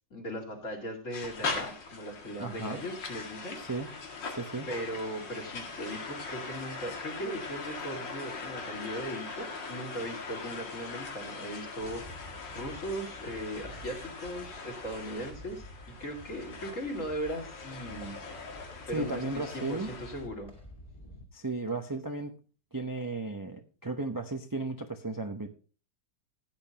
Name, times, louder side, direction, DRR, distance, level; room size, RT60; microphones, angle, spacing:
voice 1, 0.0-3.6 4.7-15.7 16.0-18.2 18.9-20.5, equal, 45° left, 2 dB, 2.8 m, -38 dB
sound 1, 1.1-20.2, left 4 dB, 85° left, 2.6 m, -41 dB
voice 2, 2.4-2.8 3.6-3.9 4.3-4.7 18.9-19.9 21.3-22.3 22.7-25.5, right 2 dB, 30° right, 6 dB, 0.4 m, -34 dB
sound 2, 11.8-21.2, equal, 20° left, 1.8 m, -50 dB
16.0 x 8.9 x 2.9 m, 0.36 s
omnidirectional pair, 1.9 m